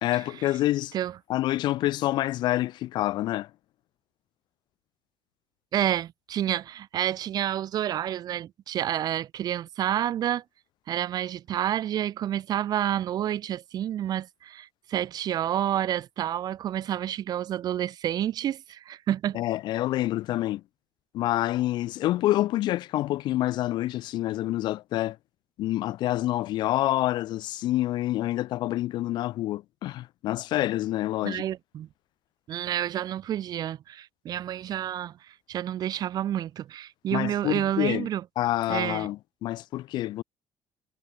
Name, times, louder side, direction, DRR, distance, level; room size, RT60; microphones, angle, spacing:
voice 1, 0.0-0.9 1.3-3.5 19.3-20.6 21.1-25.2 25.6-31.4 37.1-38.1 38.4-40.2, left 15 dB, 65° left, 0.4 m, -27 dB
voice 2, 5.7-10.4 10.9-19.4 31.2-31.9 32.5-38.2 38.7-39.1, right 11 dB, 55° right, 1.4 m, -29 dB
cardioid pair, 130°, 8 cm